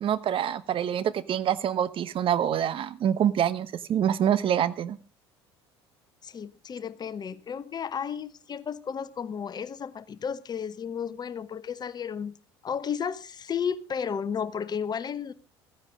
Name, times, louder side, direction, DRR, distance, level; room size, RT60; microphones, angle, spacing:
voice 1, 0.0-5.0, right 9 dB, 40° right, 15 dB, 1.1 m, -26 dB
voice 2, 6.2-12.3 12.6-15.3, left 7 dB, 30° left, 16 dB, 1.0 m, -33 dB
15.0 x 15.0 x 3.7 m, 0.34 s
figure-of-eight pair, 65°, 14 cm